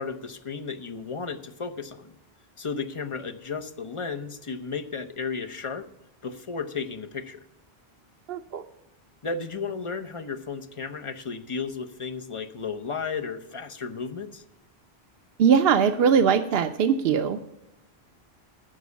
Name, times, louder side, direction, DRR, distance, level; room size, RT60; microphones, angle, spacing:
voice 1, 0.0-2.1 2.6-5.8 6.2-7.4 9.2-14.4, left 5 dB, 35° left, 6 dB, 0.8 m, -34 dB
voice 2, 8.3-8.6 15.4-17.4, right 7 dB, 70° right, 6 dB, 0.8 m, -21 dB
9.6 x 6.2 x 8.2 m, 0.89 s
omnidirectional pair, 1.1 m